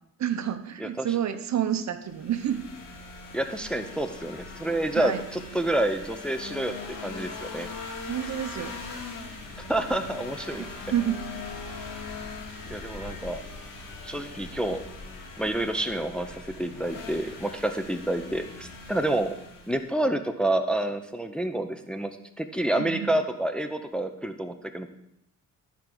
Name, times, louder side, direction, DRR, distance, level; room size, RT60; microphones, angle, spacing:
voice 1, 0.2-2.6 4.9-5.2 8.1-8.8 10.5-11.2 22.8-23.1, right 10 dB, 55° right, 10 dB, 0.8 m, -29 dB
sound 1, 2.1-19.9, left 3 dB, 65° left, 2.5 m, -41 dB
voice 2, 3.3-7.7 9.6-10.7 12.7-13.4 14.0-14.8 15.4-19.3 19.7-24.9, right 1 dB, 5° left, 7 dB, 0.6 m, -28 dB
12.5 x 4.6 x 3.8 m, 0.79 s
cardioid pair, 85°, 34 cm